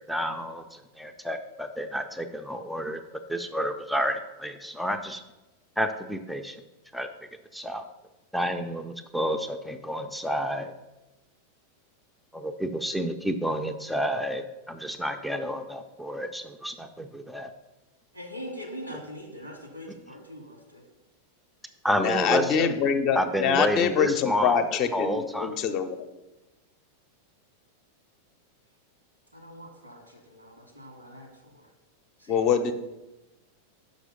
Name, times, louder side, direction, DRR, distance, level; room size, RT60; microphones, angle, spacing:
voice 1, 0.1-3.0 3.3-5.2 5.8-6.6 6.9-7.1 7.5-7.8 8.3-10.7 12.3-17.5 21.8-22.8 23.2-24.6 24.9-25.5, equal, ahead, 6 dB, 0.5 m, -30 dB
voice 2, 18.1-20.8 29.3-31.6 32.2-32.5, equal, 85° right, 2 dB, 1.7 m, -42 dB
voice 3, 22.0-26.1 32.3-32.7, left 7 dB, 40° left, 8 dB, 0.7 m, -25 dB
6.2 x 5.2 x 5.1 m, 1.0 s
figure-of-eight pair, 90°, 0 cm